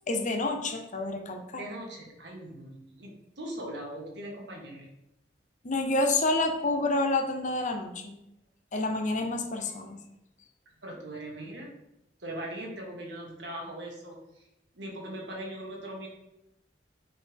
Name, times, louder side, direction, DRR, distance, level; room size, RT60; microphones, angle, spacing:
voice 1, 0.1-1.6 5.6-8.2 8.7-10.0, left 2 dB, 45° left, 4 dB, 0.7 m, -28 dB
voice 2, 1.6-4.9 10.8-11.7 12.2-14.5 14.7-16.1, right 1 dB, 70° right, -1 dB, 1.5 m, -40 dB
6.6 x 4.3 x 3.5 m, 0.87 s
head